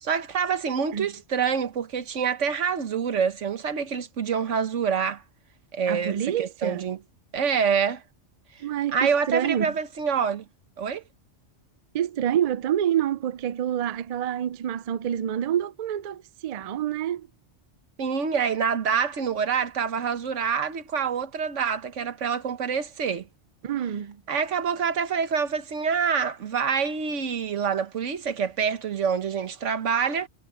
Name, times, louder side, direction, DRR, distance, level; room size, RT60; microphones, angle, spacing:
voice 1, 0.0-5.2 5.7-7.0 7.3-8.0 8.9-10.4 10.8-11.0 18.0-23.3 24.3-30.3, right 6 dB, 85° right, 1.5 m, -26 dB
voice 2, 5.9-6.9 8.6-9.7 11.9-17.3 23.6-24.2, right 10 dB, 70° right, 0.3 m, -27 dB
omnidirectional pair, 1.2 m